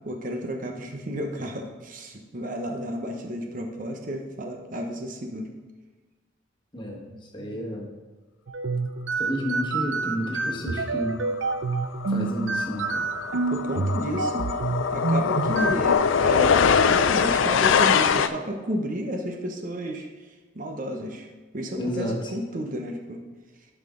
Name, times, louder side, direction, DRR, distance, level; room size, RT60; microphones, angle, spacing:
voice 1, 0.0-5.5 7.1-7.6 13.3-14.5 14.9-20.3 20.5-21.3 21.5-23.2, equal, 40° right, 2 dB, 0.9 m, -32 dB
voice 2, 6.7-7.9 9.2-11.2 12.1-13.1 21.7-22.3, equal, 25° left, -1 dB, 1.4 m, -31 dB
sound 1, 8.5-15.9, right 3 dB, 65° right, 0.5 m, -28 dB
sound 2, 11.5-11.7 12.0-18.3, left 6 dB, 70° left, 0.4 m, -23 dB
11.0 x 5.9 x 3.7 m, 1.3 s
head